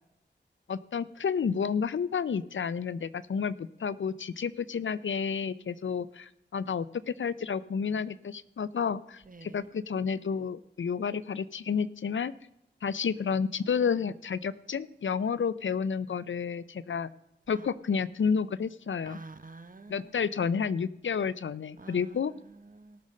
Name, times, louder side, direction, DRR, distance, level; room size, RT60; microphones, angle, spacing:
voice 1, 0.7-12.3 12.8-17.1 17.5-19.2 19.9-22.3, left 6 dB, 90° left, 0.5 m, -30 dB
voice 2, 9.3-9.6 17.6-17.7 19.1-20.2 21.8-23.0, right 3 dB, 45° right, 0.9 m, -49 dB
18.0 x 6.4 x 5.3 m
wide cardioid pair, 45°, 19 cm